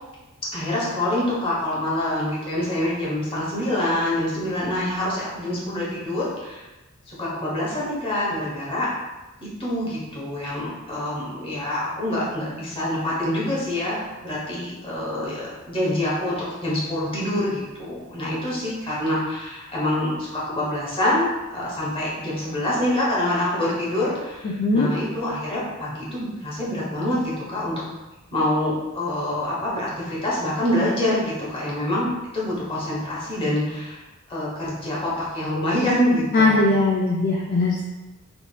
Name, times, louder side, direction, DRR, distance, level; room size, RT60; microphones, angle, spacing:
voice 1, 0.5-6.6 7.1-8.9 9.4-27.8 28.3-34.0 34.3-36.7, left 1 dB, 25° left, -6 dB, 0.9 m, -26 dB
voice 2, 24.4-24.9 36.3-37.8, left 2 dB, 40° left, -3 dB, 0.3 m, -20 dB
3.5 x 2.4 x 2.2 m, 1.1 s
head